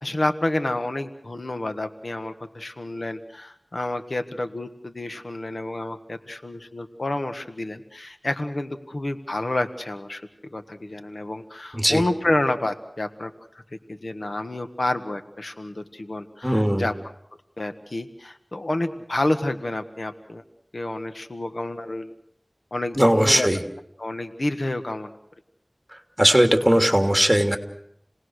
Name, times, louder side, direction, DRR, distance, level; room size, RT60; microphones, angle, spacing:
voice 1, 0.0-10.2 10.5-13.3 13.9-16.9 17.6-20.4 20.7-22.1 22.7-23.5 24.0-25.1, left 1 dB, 75° left, 8 dB, 1.5 m, -29 dB
voice 2, 16.4-16.9 23.0-23.6 26.2-27.6, equal, 10° right, 5 dB, 3.1 m, -18 dB
29.5 x 19.0 x 6.5 m, 0.73 s
wide cardioid pair, 40°, 0 cm